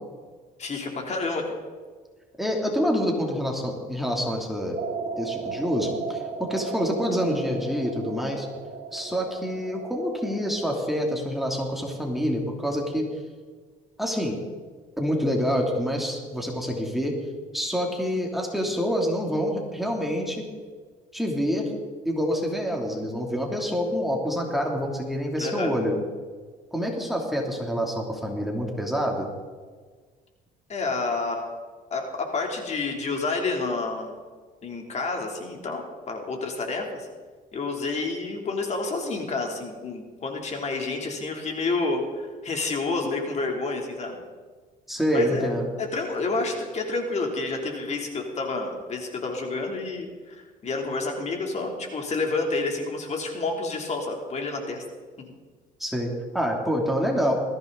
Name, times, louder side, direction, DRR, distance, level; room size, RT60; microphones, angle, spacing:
voice 1, 0.6-1.4 25.4-25.7 30.7-31.5 31.9-34.2 34.6-37.1 37.5-44.1 45.1-45.5 45.8-54.8, left 3 dB, 40° left, 2 dB, 3.3 m, -29 dB
voice 2, 2.4-4.8 5.2-8.5 8.9-13.1 14.0-14.4 15.0-17.1 17.5-20.5 21.1-21.7 22.0-26.0 26.7-29.3 44.9-45.7 55.8-57.3, equal, ahead, 0 dB, 3.1 m, -27 dB
sound 1, 4.8-10.7, right 5 dB, 55° right, 4.4 m, -36 dB
21.0 x 15.0 x 4.1 m, 1.5 s
cardioid pair, 110°, 17 cm